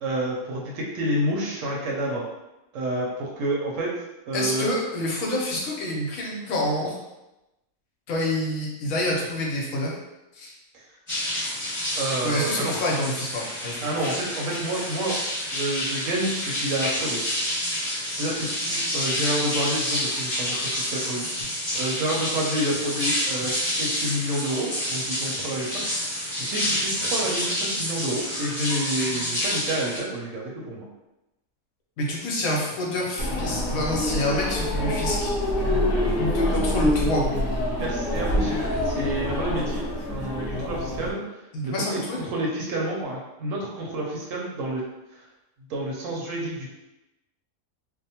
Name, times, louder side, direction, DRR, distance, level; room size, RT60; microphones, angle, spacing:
voice 1, 0.0-2.2 2.7-3.9 4.3-4.7 12.0-12.7 13.8-15.2 15.5-17.2 18.1-25.8 26.4-30.8 36.2-36.4 37.8-41.2 41.6-42.0 42.2-44.8 45.7-46.7, right 1 dB, 70° right, -3 dB, 0.9 m, -29 dB
voice 2, 4.3-7.0 8.1-9.9 10.3-10.5 12.2-13.9 32.0-35.3 36.3-37.2 41.5-42.2, left 1 dB, 70° left, -2 dB, 1.0 m, -27 dB
sound 1, 11.1-30.0, equal, 15° left, 1.0 m, -28 dB
sound 2, 33.2-41.1, left 1 dB, 55° left, 0.6 m, -26 dB
2.7 x 2.0 x 2.8 m, 0.96 s
omnidirectional pair, 1.5 m